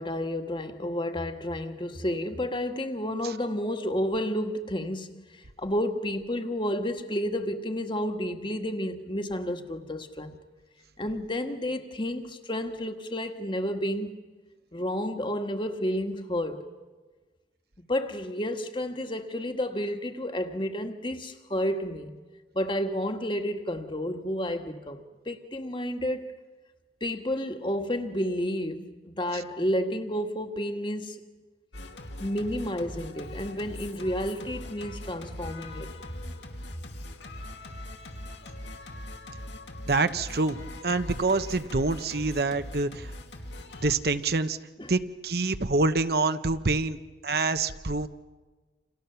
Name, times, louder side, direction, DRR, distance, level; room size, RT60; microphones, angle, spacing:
voice 1, 0.0-10.4 11.0-14.2 14.7-16.7 17.9-22.2 22.5-26.3 27.0-31.3 32.2-35.9 44.8-44.9, equal, 25° left, 1.6 m, -31 dB
Singing, 31.7-43.9, left 1 dB, 80° left, 2.7 m, -41 dB
voice 2, 39.9-43.1 43.8-44.6 44.9-47.0 47.2-48.1, right 3 dB, 60° right, 1.0 m, -26 dB
29.5 x 28.0 x 7.0 m
head